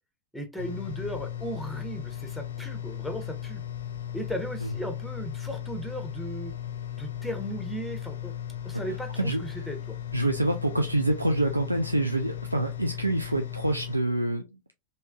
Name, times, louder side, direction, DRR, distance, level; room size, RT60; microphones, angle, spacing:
voice 1, 0.3-3.6 4.1-6.5 6.9-8.3 8.6-10.0, right 1 dB, ahead, 0.7 m, -36 dB
sound 1, 0.6-14.0, left 10 dB, 65° left, 0.5 m, -36 dB
voice 2, 9.2-9.7 10.1-14.4, right 1 dB, 85° right, 0.3 m, -26 dB
3.2 x 2.7 x 2.4 m
figure-of-eight pair, 90°, 0 cm